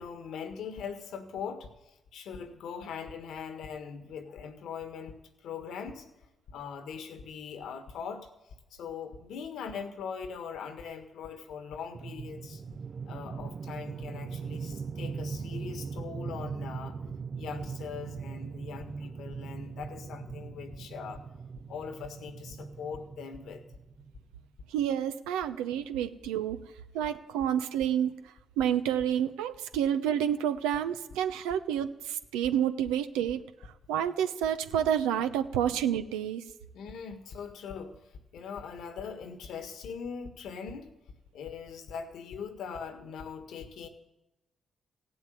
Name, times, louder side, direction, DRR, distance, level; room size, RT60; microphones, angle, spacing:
voice 1, 0.0-6.1 6.5-8.3 8.7-12.6 13.1-17.0 17.3-21.2 21.7-23.6 36.7-40.9 41.3-43.9, left 6 dB, 75° left, 8 dB, 1.6 m, -41 dB
sound 1, 11.9-24.2, right 5 dB, 55° right, 0.6 m, -40 dB
voice 2, 24.7-26.6 26.9-33.4 33.9-36.4, right 9 dB, 90° right, 10 dB, 0.8 m, -29 dB
16.0 x 7.8 x 9.3 m, 0.99 s
supercardioid pair, 50°, 0 cm